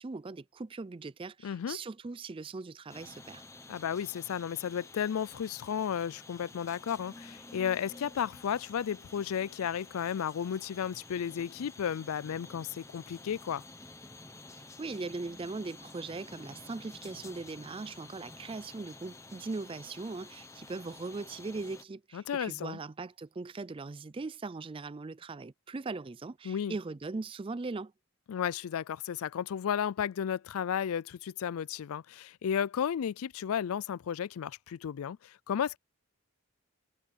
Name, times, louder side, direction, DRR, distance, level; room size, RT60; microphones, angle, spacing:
voice 1, 0.0-3.4 14.6-27.9, right 3 dB, 25° right, 0.3 m, -40 dB
voice 2, 1.4-1.8 3.7-13.6 22.1-22.8 26.4-26.8 28.3-35.8, left 8 dB, 80° left, 0.4 m, -33 dB
sound 1, 2.9-21.8, left 2 dB, 15° left, 1.0 m, -51 dB
head